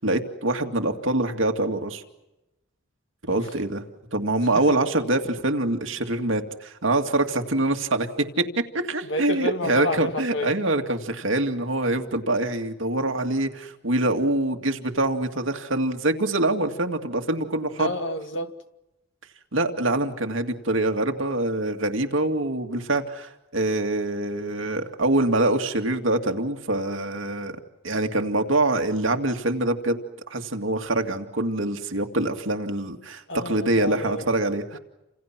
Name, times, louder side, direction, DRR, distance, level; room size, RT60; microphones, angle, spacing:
voice 1, 0.0-2.0 3.2-3.8 4.1-8.5 8.7-17.9 19.5-27.5 27.8-30.0 30.3-34.8, right 2 dB, 70° right, 2.3 m, -25 dB
voice 2, 9.0-10.5 17.8-18.5 33.3-34.3, left 1 dB, 65° left, 2.1 m, -30 dB
29.5 x 27.5 x 6.1 m
head